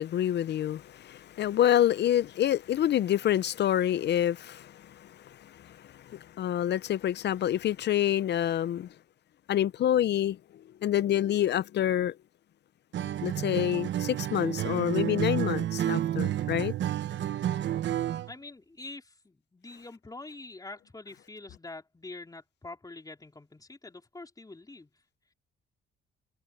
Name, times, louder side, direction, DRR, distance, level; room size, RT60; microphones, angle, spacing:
voice 1, 0.0-8.9 9.5-12.2 13.2-16.7, left 11 dB, 60° left, 0.6 m, -27 dB
Acoustic guitar, 12.9-18.3, right 11 dB, 65° right, 1.0 m, -30 dB
voice 2, 18.3-24.9, left 2 dB, 20° left, 4.2 m, -45 dB
cardioid pair, 90°, 20 cm